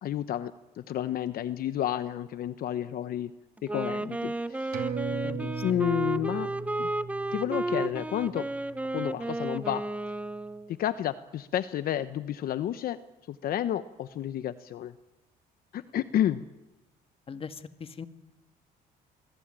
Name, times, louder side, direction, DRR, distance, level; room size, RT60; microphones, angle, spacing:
voice 1, 0.0-3.3 3.6-4.8 5.6-6.5 6.8-6.9 7.3-8.5 8.9-9.9 10.7-13.0 13.3-14.9 15.7-16.5, left 11 dB, 60° left, 12 dB, 1.0 m, -31 dB
Wind instrument woodwind instrument, 3.6-10.7, right 2 dB, 10° right, 1.0 m, -33 dB
sound 1, 4.7-9.7 10.0-10.1, right 5 dB, 65° right, 4.3 m, -38 dB
voice 2, 5.1-5.6 17.3-18.1, left 6 dB, 35° left, 10 dB, 1.8 m, -41 dB
28.0 x 22.0 x 9.0 m, 1.1 s
cardioid pair, 110°, 17 cm